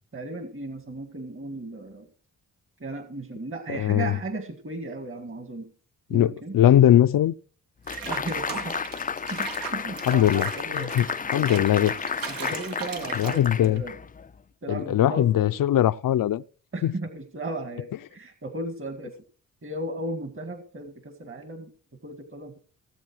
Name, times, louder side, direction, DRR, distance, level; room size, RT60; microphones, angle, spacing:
voice 1, 0.1-2.1 2.8-5.7 6.1-6.6 8.1-8.9 9.3-10.9 11.3-11.7 12.3-14.0 14.6-15.5 16.7-19.1 19.6-21.7 22.0-22.7, right 2 dB, 35° right, 2.0 m, -35 dB
voice 2, 3.7-4.2 6.1-7.4 10.1-11.1 11.3-11.9 13.2-13.8 14.7-16.4 16.8-17.0, left 11 dB, 65° left, 0.7 m, -21 dB
sound 1, 7.9-14.3, left 6 dB, 25° left, 0.5 m, -32 dB
Water / Bathtub (filling or washing), 7.9-13.8, right 6 dB, 70° right, 1.7 m, -38 dB
17.0 x 8.1 x 4.6 m
supercardioid pair, 55°, 35 cm